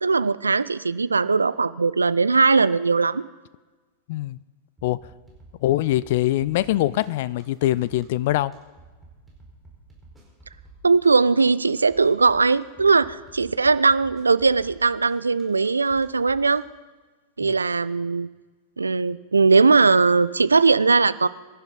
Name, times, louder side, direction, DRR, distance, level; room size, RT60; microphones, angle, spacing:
voice 1, 0.0-3.2 10.8-16.6 17.4-18.3 18.8-21.3, right 4 dB, 80° right, 17 dB, 0.4 m, -19 dB
sound 1, 4.8-16.5, right 3 dB, 15° right, 4.8 m, -50 dB
voice 2, 5.6-8.5 17.4-17.5, left 15 dB, 50° left, 20 dB, 0.4 m, -23 dB
24.5 x 11.5 x 4.1 m, 1.3 s
figure-of-eight pair, 90°, 0 cm